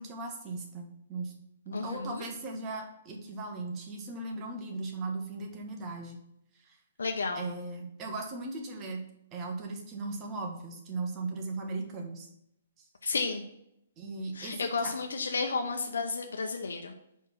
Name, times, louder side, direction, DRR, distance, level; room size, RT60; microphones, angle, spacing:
voice 1, 0.0-1.3 1.6-6.2 6.6-6.8 7.3-9.0 9.3-12.3 14.0-14.9, right 3 dB, 25° right, 2 dB, 1.4 m, -38 dB
voice 2, 1.7-2.2 7.0-7.4 13.0-13.4 14.4-16.9, left 4 dB, 90° left, 4 dB, 0.8 m, -32 dB
5.0 x 4.6 x 5.9 m, 0.78 s
hypercardioid pair, 145°, 0 cm